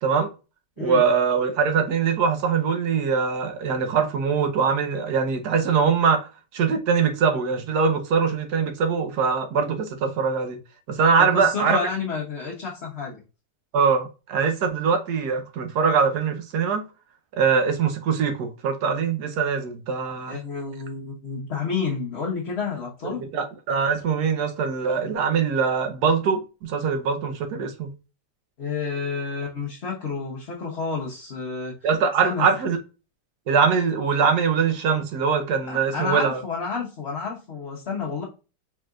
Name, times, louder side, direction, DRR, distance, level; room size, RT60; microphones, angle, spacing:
voice 1, 0.8-10.6 10.9-11.8 13.7-16.8 17.4-20.4 23.3-27.9 31.8-32.8 33.5-36.4, right 6 dB, 70° right, 1.4 m, -22 dB
voice 2, 11.2-13.2 20.3-23.2 28.6-31.9 32.2-32.5 35.6-38.2, left 5 dB, 40° left, 1.3 m, -30 dB
4.7 x 4.2 x 2.4 m
omnidirectional pair, 1.8 m